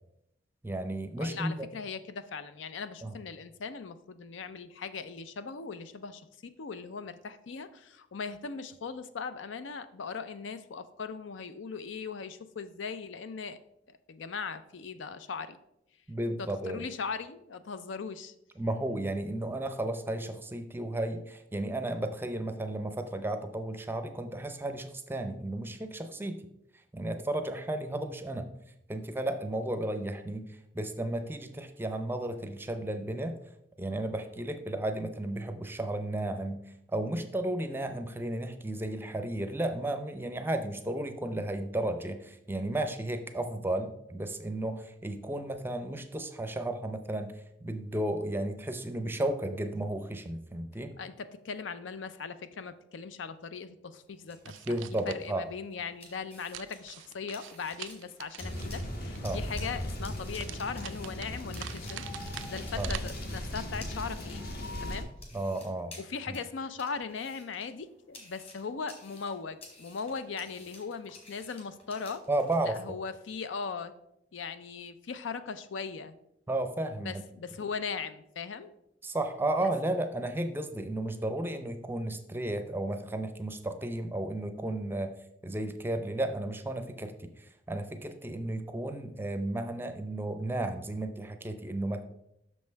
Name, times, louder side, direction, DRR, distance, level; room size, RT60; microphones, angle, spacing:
voice 1, 0.6-1.7 3.0-3.2 16.1-16.9 18.6-26.5 26.9-28.5 28.9-33.4 33.8-36.6 36.9-50.9 54.7-55.5 59.2-59.4 62.8-62.9 65.3-65.9 66.3-66.4 72.3-73.0 76.5-77.2 79.0-85.1 85.4-92.0, right 1 dB, 10° right, 8 dB, 0.5 m, -33 dB
voice 2, 1.2-13.6 14.1-15.6 16.4-18.3 51.0-54.8 55.1-62.0 62.5-64.4 64.8-65.1 66.0-72.2 72.6-73.9 74.3-76.1 77.0-78.7, left 5 dB, 85° left, 13 dB, 0.5 m, -39 dB
sound 1, 54.0-72.6, left 2 dB, 35° left, 2.0 m, -54 dB
sound 2, 54.4-55.3 56.5-59.2 60.4-63.0, right 12 dB, 80° right, 0.3 m, -45 dB
sound 3, 58.4-65.0, left 1 dB, 55° left, 1.3 m, -37 dB
6.4 x 5.4 x 4.5 m, 0.80 s
head